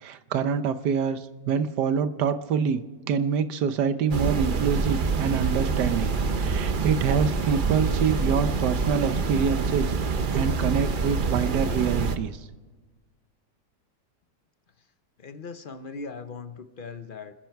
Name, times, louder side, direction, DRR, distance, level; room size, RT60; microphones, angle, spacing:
voice 1, 0.0-2.8 3.1-6.1 6.4-12.4, right 7 dB, 80° right, 11 dB, 1.5 m, -26 dB
sound 1, 4.1-12.2, right 4 dB, 45° right, 0.7 m, -26 dB
voice 2, 15.2-17.3, left 4 dB, 50° left, 9 dB, 0.6 m, -39 dB
30.0 x 10.5 x 4.6 m, 1.3 s
omnidirectional pair, 1.8 m